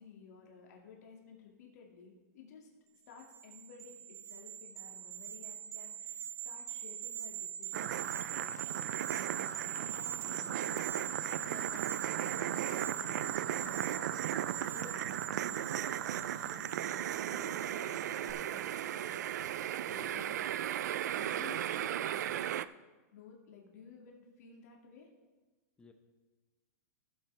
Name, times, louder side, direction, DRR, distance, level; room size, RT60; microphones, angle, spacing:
voice 1, 0.0-2.7 3.1-19.3 19.8-20.7 21.1-22.5 23.1-25.1, left 5 dB, 65° left, 0 dB, 2.1 m, -55 dB
sound 1, 3.2-17.8 18.1-18.3, right 10 dB, 30° right, 0.8 m, -42 dB
sound 2, 7.7-22.6, right 11 dB, 75° right, 0.4 m, -36 dB
Singing, 9.5-14.9 15.5-19.4, left 1 dB, 15° right, 4.0 m, -62 dB
voice 2, 19.9-20.2 21.1-21.6 25.8-25.9, left 4 dB, 10° left, 5 dB, 1.0 m, -60 dB
15.0 x 7.6 x 3.3 m, 1.2 s
hypercardioid pair, 140°, 9 cm